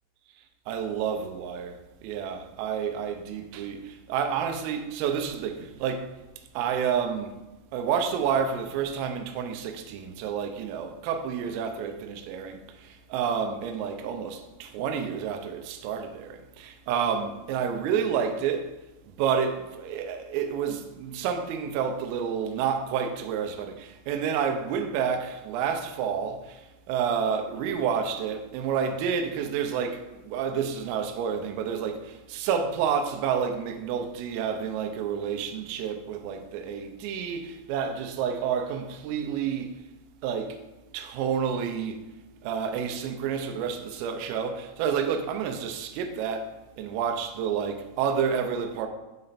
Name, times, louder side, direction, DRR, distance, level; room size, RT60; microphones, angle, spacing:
voice 1, 0.7-6.1 6.5-7.4 7.7-18.7 19.2-39.7 40.2-40.6 40.9-42.1 42.4-46.5 46.8-48.9, right 7 dB, 85° right, 3.4 m, -29 dB
11.5 x 4.3 x 4.0 m
omnidirectional pair, 5.9 m